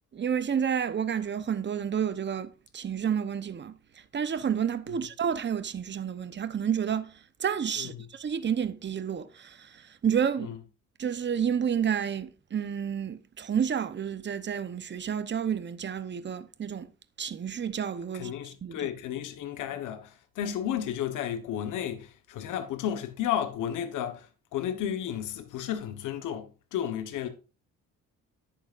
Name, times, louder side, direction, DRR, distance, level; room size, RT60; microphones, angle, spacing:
voice 1, 0.1-3.8 4.1-10.6 11.0-16.9 17.2-18.3 18.6-18.9, right 8 dB, 40° right, 0.9 m, -30 dB
voice 2, 18.1-27.3, left 10 dB, 85° left, 1.3 m, -33 dB
10.5 x 8.9 x 2.6 m
cardioid pair, 90°, 30 cm